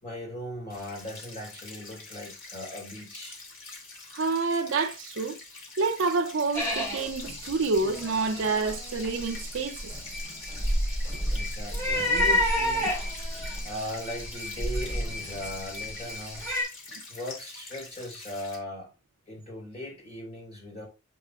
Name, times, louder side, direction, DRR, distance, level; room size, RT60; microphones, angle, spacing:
voice 1, 0.0-3.4 11.3-12.9 13.6-16.5 17.1-18.9 19.3-20.9, left 1 dB, 30° left, 3.7 m, -38 dB
sound 1, 0.7-18.6, left 3 dB, 65° left, 2.5 m, -46 dB
voice 2, 4.1-5.4 5.8-9.8 12.8-12.9 13.4-13.6, right 4 dB, 60° right, 0.5 m, -28 dB
sound 2, 6.5-16.6, left 1 dB, 15° left, 3.2 m, -30 dB
7.4 x 6.0 x 2.3 m
head